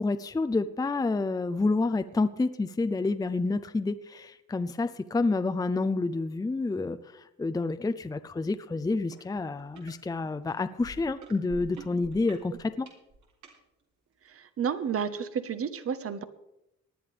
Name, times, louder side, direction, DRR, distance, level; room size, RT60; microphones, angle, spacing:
voice 1, 0.0-12.9, left 3 dB, 10° left, 10 dB, 0.5 m, -29 dB
sound 1, 9.1-9.2 9.6-9.9 10.5-13.6 14.3-14.4, right 4 dB, 75° right, 3.4 m, -46 dB
voice 2, 14.3-16.2, right 7 dB, 50° right, 12 dB, 1.1 m, -31 dB
19.0 x 10.5 x 3.4 m, 0.87 s
cardioid pair, 90°, 30 cm